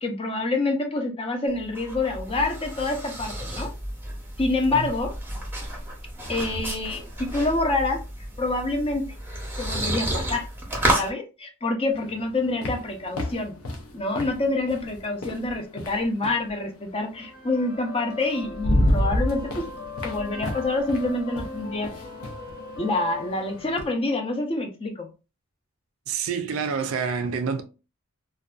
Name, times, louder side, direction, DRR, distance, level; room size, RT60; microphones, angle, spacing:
voice 1, 0.0-3.7 4.4-5.1 6.3-8.0 8.4-9.1 9.6-10.5 11.0-13.5 13.9-19.7 20.0-21.9 22.8-25.1, left 2 dB, 25° left, 0.5 m, -27 dB
sound 1, 1.5-11.1, right 1 dB, 10° right, 0.7 m, -31 dB
sound 2, 11.9-16.5 17.8-17.9 18.3-23.9, left 1 dB, 85° left, 0.6 m, -30 dB
sound 3, 17.1-24.1, left 4 dB, 50° left, 0.8 m, -39 dB
voice 2, 26.1-27.6, right 6 dB, 70° right, 0.4 m, -27 dB
2.5 x 2.2 x 2.3 m
head